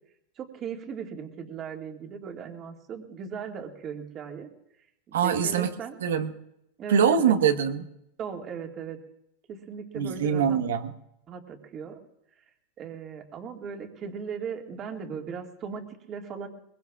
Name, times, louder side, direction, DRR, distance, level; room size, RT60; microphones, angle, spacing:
voice 1, 0.4-4.5 5.2-6.0 6.8-7.3 8.2-9.0 9.5-10.6 11.3-12.0 12.8-16.5, right 6 dB, 35° right, 3 dB, 2.0 m, -38 dB
voice 2, 5.1-5.7 6.0-6.3 6.9-7.8 9.9-10.9, right 7 dB, 90° right, 7 dB, 1.2 m, -23 dB
22.0 x 21.0 x 2.4 m, 0.80 s
supercardioid pair, 130°, 0 cm